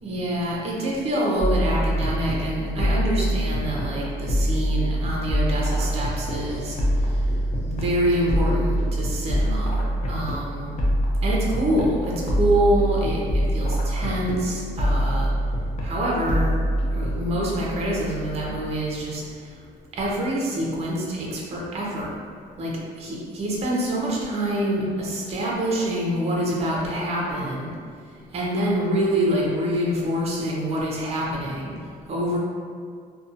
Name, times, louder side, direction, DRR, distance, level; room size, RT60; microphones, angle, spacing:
voice 1, 0.0-6.8 7.6-10.7 11.2-15.3 15.8-16.6 16.9-19.2 20.0-22.1 22.6-27.7 28.3-31.7 32.1-32.4, right 1 dB, 40° right, -4 dB, 0.6 m, -26 dB
sound 1, 1.4-19.0, equal, 45° left, 0.5 m, -25 dB
sound 2, 5.6-9.1, left 1 dB, 80° left, 0.8 m, -42 dB
2.6 x 2.2 x 2.5 m, 2.1 s
cardioid pair, 110°, 17 cm